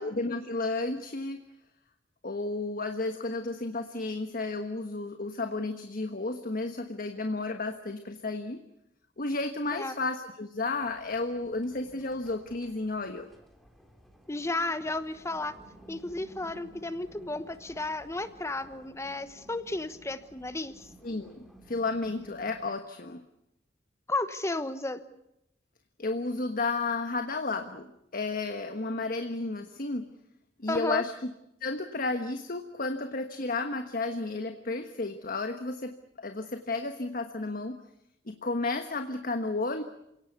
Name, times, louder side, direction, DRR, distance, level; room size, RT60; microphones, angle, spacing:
voice 1, 0.0-1.4 2.2-8.6 9.2-13.3 21.0-23.2 26.0-30.1 30.6-31.3 31.6-37.8 38.3-39.8, left 3 dB, 50° left, 7 dB, 1.3 m, -32 dB
sound 1, 10.8-22.7, right 1 dB, ahead, 3.1 m, -55 dB
voice 2, 14.3-15.5 15.9-20.9 24.1-25.0 30.7-31.0, left 2 dB, 15° left, 12 dB, 1.1 m, -33 dB
28.0 x 18.0 x 8.2 m, 0.83 s
head